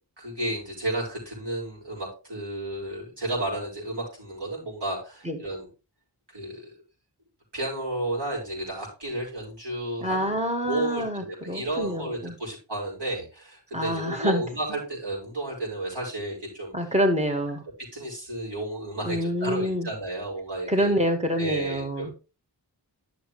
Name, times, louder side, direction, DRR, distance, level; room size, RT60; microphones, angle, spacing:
voice 1, 0.2-5.7 6.3-6.6 7.5-10.3 10.7-17.0 17.9-21.0 21.4-22.1, right 1 dB, 70° right, -3 dB, 5.5 m, -32 dB
voice 2, 10.0-12.3 13.7-14.4 16.7-17.6 19.0-19.9 20.7-22.2, equal, 15° right, 4 dB, 1.9 m, -26 dB
11.0 x 6.5 x 3.3 m, 0.31 s
wide cardioid pair, 70°, 42 cm